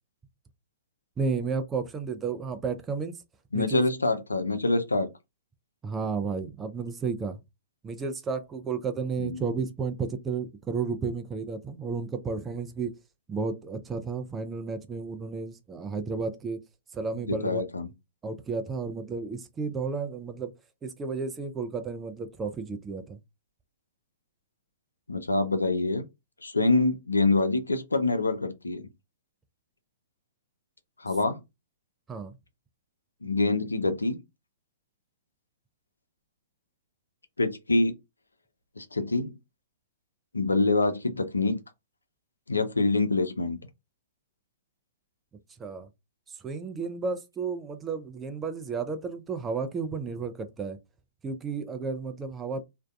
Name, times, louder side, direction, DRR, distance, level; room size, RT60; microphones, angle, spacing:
voice 1, 1.2-3.1 3.5-3.8 5.8-7.4 7.8-12.9 13.3-16.6 16.9-17.6 18.2-20.5 20.8-23.2 32.1-32.3 45.6-45.9 46.4-50.8 51.2-52.6, right 5 dB, 15° right, 0.4 m, -32 dB
voice 2, 3.5-5.1 9.2-9.4 17.3-17.9 25.1-26.1 26.4-28.9 31.0-31.4 33.2-34.2 37.4-38.0 38.8-39.4 40.3-41.6 42.5-43.6, left 2 dB, 80° left, 0.4 m, -25 dB
2.5 x 2.2 x 2.3 m
figure-of-eight pair, 115°, 0 cm